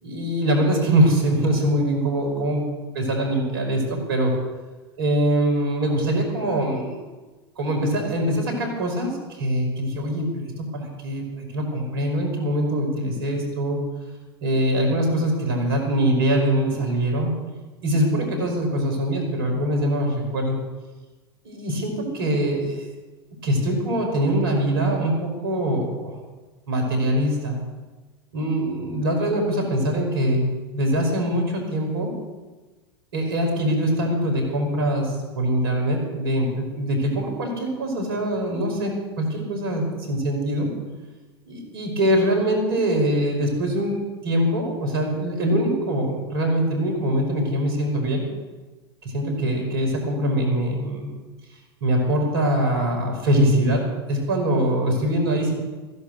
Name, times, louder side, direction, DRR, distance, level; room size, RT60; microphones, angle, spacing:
voice 1, 0.0-2.7 2.9-4.3 5.0-7.0 7.6-13.8 14.4-17.3 17.8-20.6 21.4-22.9 23.4-26.2 26.7-27.6 28.3-30.4 30.7-32.1 33.1-40.7 41.4-48.2 49.0-51.1 51.8-53.8 54.1-55.5, right 1 dB, 70° right, 2 dB, 5.1 m, -23 dB
15.5 x 11.0 x 6.5 m, 1.2 s
hypercardioid pair, 90°, 13 cm